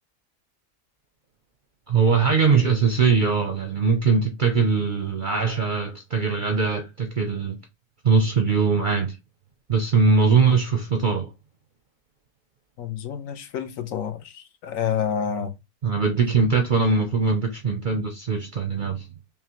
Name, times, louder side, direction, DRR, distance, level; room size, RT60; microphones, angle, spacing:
voice 1, 1.9-7.6 8.0-9.1 9.7-11.3 15.8-19.0, right 5 dB, 50° right, 0.6 m, -21 dB
voice 2, 12.8-15.5, left 8 dB, 70° left, 1.0 m, -29 dB
5.6 x 2.2 x 2.9 m
omnidirectional pair, 1.5 m